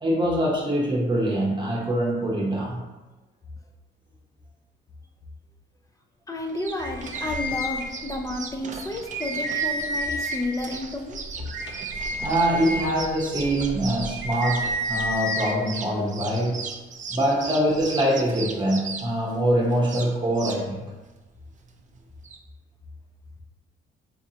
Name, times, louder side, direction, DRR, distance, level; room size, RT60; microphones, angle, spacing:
voice 1, 0.0-2.8 12.2-16.6 17.1-20.8, right 1 dB, 25° right, -4 dB, 0.9 m, -24 dB
voice 2, 6.3-11.2, left 2 dB, 15° left, 2 dB, 0.6 m, -31 dB
sound 1, 6.4-22.4, right 5 dB, 40° right, 0.5 m, -39 dB
sound 2, 6.7-8.3 8.7-8.8 9.1-10.6 11.1-15.5, right 1 dB, 70° right, 0.8 m, -30 dB
4.4 x 2.6 x 2.8 m, 1.1 s
cardioid pair, 90°, 20 cm